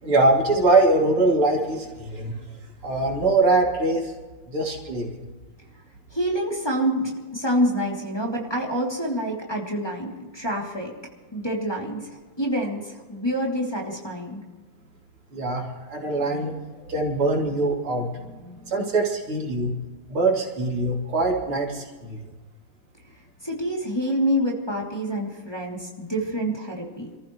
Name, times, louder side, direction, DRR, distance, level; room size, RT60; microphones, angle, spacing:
voice 1, 0.0-2.3 2.8-4.1 4.5-5.2 15.3-16.5 16.9-19.7 20.1-22.2, right 2 dB, 80° right, -1 dB, 3.9 m, -23 dB
voice 2, 6.1-10.9 11.3-14.4 23.4-27.2, equal, 10° left, -3 dB, 2.9 m, -27 dB
28.0 x 14.5 x 3.2 m, 1.3 s
omnidirectional pair, 2.4 m